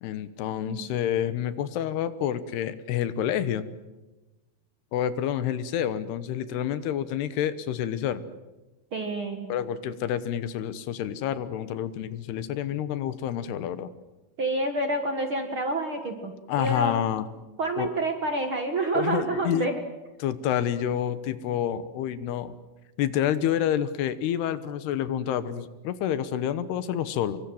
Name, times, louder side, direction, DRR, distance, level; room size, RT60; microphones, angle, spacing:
voice 1, 0.0-3.6 4.9-8.2 9.5-13.9 16.5-17.2 17.8-17.9 18.9-19.7 20.2-22.5 23.0-27.4, left 10 dB, 80° left, 13 dB, 3.2 m, -28 dB
voice 2, 8.9-9.5 14.4-17.0 17.6-19.8, right 2 dB, 45° right, 5 dB, 1.8 m, -28 dB
26.0 x 23.5 x 7.8 m, 1.1 s
omnidirectional pair, 4.7 m